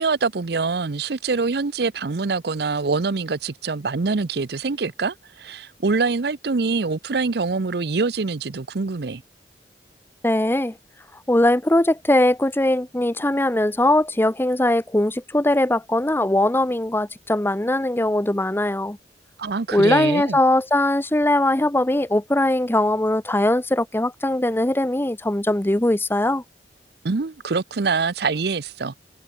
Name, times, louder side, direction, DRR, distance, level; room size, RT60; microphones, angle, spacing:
voice 1, 0.0-9.2 19.4-20.4 27.0-29.0, right 4 dB, 65° right, 0.7 m, -24 dB
voice 2, 10.2-10.7 11.3-19.0 19.7-26.4, left 1 dB, 15° left, 0.8 m, -20 dB
head